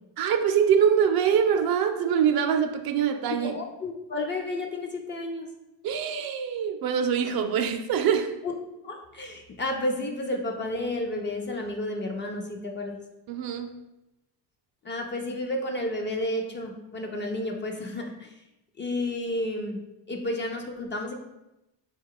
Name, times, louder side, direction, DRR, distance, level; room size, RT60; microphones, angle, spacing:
voice 1, 0.2-3.5 5.8-8.3 13.3-13.7, right 7 dB, 60° right, 7 dB, 0.5 m, -24 dB
voice 2, 3.3-5.5 8.4-8.5 8.8-13.0 14.8-18.3 18.8-19.8 20.1-21.1, left 1 dB, 30° left, 2 dB, 0.4 m, -31 dB
4.0 x 2.3 x 4.6 m, 0.94 s
cardioid pair, 125°, 42 cm